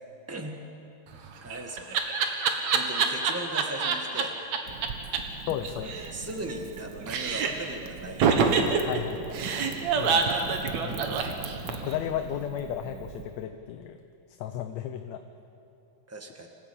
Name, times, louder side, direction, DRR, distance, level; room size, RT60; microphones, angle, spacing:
voice 1, 0.3-0.6 1.4-4.4 5.8-9.0 10.9-11.1 11.8-12.0 16.1-16.5, right 2 dB, 15° right, 3 dB, 0.5 m, -39 dB
Laughter, 1.1-4.2 4.5-4.6 4.8-4.9 5.1-5.2 5.5-6.8 7.1-7.7 8.2-11.9, right 5 dB, 65° right, 2.7 m, -26 dB
Wind / Fire, 4.7-13.2, right 6 dB, 85° right, 0.9 m, -41 dB
voice 2, 5.5-6.1 8.9-9.3 10.0-11.4 11.7-14.0 14.4-15.2, left 10 dB, 75° left, 7 dB, 1.9 m, -35 dB
26.5 x 15.5 x 8.6 m, 2.7 s
omnidirectional pair, 3.4 m